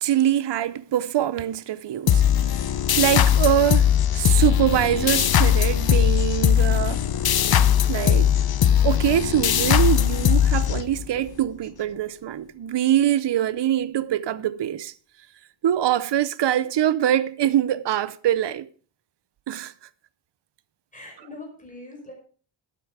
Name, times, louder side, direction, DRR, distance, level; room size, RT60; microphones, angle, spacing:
voice 1, 0.0-2.2 3.0-7.0 7.9-8.3 8.8-14.9 15.6-18.7 19.5-19.7, right 11 dB, 60° right, 0.7 m, -23 dB
sound 1, 2.1-11.3, left 9 dB, 50° left, 0.6 m, -20 dB
voice 2, 20.9-22.1, left 2 dB, 15° left, 5.6 m, -41 dB
12.5 x 9.9 x 4.7 m
wide cardioid pair, 145°, 49 cm